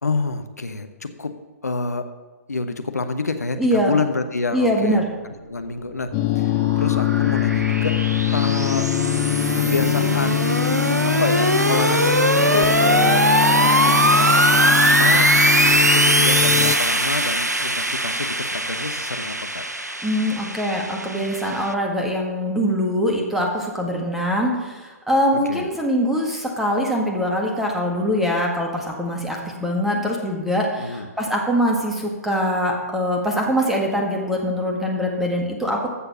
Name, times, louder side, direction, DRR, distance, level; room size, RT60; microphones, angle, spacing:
voice 1, 0.0-1.3 1.6-2.1 2.5-5.0 5.5-6.1 6.3-7.9 8.3-8.9 9.5-10.5 11.0-19.7 25.5-25.7 30.8-31.1, left 3 dB, 75° left, 7 dB, 1.0 m, -28 dB
voice 2, 3.6-4.0 4.5-5.1 20.0-35.9, equal, 5° right, 0 dB, 1.8 m, -23 dB
sound 1, 5.7-21.7, right 1 dB, 85° right, 0.8 m, -21 dB
sound 2, 6.1-16.8, left 16 dB, 25° left, 0.4 m, -23 dB
14.0 x 6.9 x 5.6 m, 1.3 s
figure-of-eight pair, 120°, 9 cm